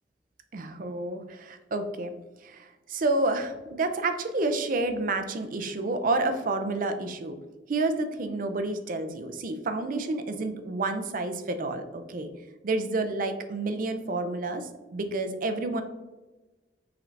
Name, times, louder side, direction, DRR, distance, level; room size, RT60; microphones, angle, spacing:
voice 1, 0.5-2.1 2.4-7.4 7.7-12.3 12.6-15.8, right 2 dB, 50° right, 8 dB, 0.4 m, -29 dB
5.7 x 3.2 x 2.5 m, 1.1 s
head